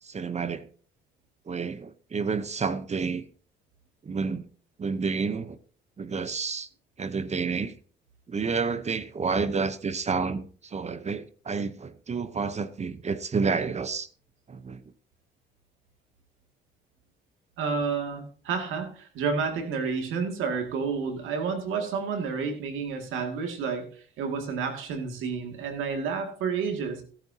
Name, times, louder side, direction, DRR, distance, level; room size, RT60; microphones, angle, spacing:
voice 1, 0.0-0.7 1.5-3.3 4.0-4.5 4.8-5.6 6.0-6.7 7.0-7.7 8.3-14.1 14.5-14.8, right 5 dB, 35° right, 0.9 m, -30 dB
voice 2, 17.6-27.0, right 5 dB, 90° right, 2.3 m, -30 dB
16.5 x 11.0 x 2.8 m
cardioid pair, 90°, 20 cm